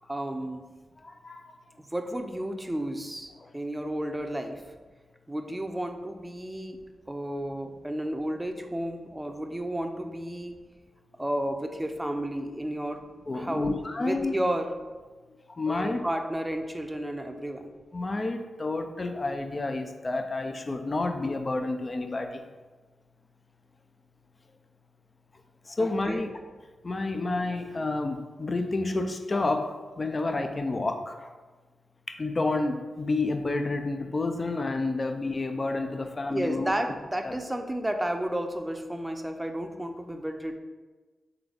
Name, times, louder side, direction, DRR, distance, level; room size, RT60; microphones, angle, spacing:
voice 1, 0.1-0.6 1.8-4.6 5.3-6.8 7.1-10.6 11.2-13.0 13.3-13.7 14.0-14.7 15.7-17.7 25.8-26.2 36.3-40.6, right 1 dB, 15° right, 5 dB, 0.5 m, -32 dB
voice 2, 1.0-1.5 3.4-3.5 13.3-14.3 15.5-16.0 17.9-22.4 25.7-26.3 26.8-31.3 32.1-36.7 37.2-37.3, left 2 dB, 40° left, 6 dB, 0.5 m, -30 dB
3.8 x 3.4 x 3.4 m, 1.3 s
supercardioid pair, 40°, 0 cm